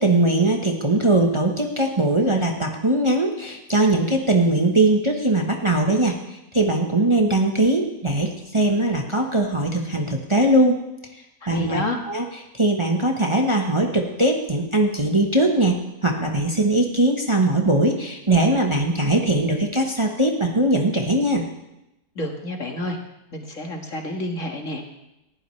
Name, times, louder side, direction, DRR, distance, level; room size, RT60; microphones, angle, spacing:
voice 1, 0.0-10.8 11.5-12.2 12.5-15.8 16.0-21.4, right 1 dB, 20° right, 1 dB, 1.1 m, -20 dB
voice 2, 11.5-12.0 22.2-23.0 23.3-24.9, left 1 dB, 55° left, 2 dB, 2.2 m, -29 dB
19.5 x 15.0 x 3.3 m, 0.89 s
omnidirectional pair, 1.6 m